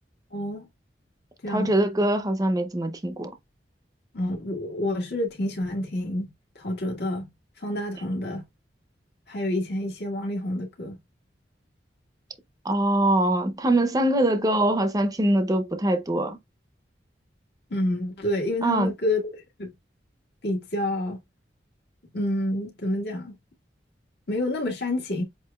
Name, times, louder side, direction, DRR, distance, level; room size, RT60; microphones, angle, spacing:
voice 1, 0.3-0.7 1.4-1.8 4.1-7.3 7.6-8.4 9.3-11.0 17.7-19.7 20.4-21.2 22.1-23.3 24.3-25.2, left 1 dB, 65° left, 1.8 m, -28 dB
voice 2, 1.5-3.3 12.6-16.4 18.6-18.9, right 1 dB, 20° right, 0.6 m, -23 dB
7.6 x 2.6 x 2.3 m
head